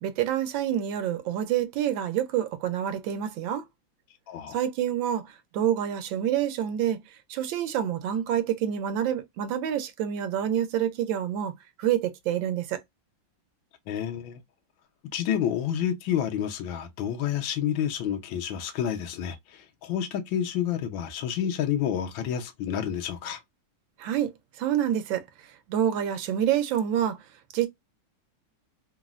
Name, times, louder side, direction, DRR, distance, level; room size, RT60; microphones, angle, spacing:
voice 1, 0.0-3.6 4.5-5.2 5.5-7.0 7.3-11.5 11.8-12.8 24.0-24.3 24.6-25.2 25.7-27.2 27.5-27.7, right 10 dB, 90° right, 1.4 m, -27 dB
voice 2, 13.9-14.4 15.1-23.4, left 9 dB, 90° left, 1.4 m, -29 dB
3.7 x 2.0 x 2.3 m
omnidirectional pair, 2.1 m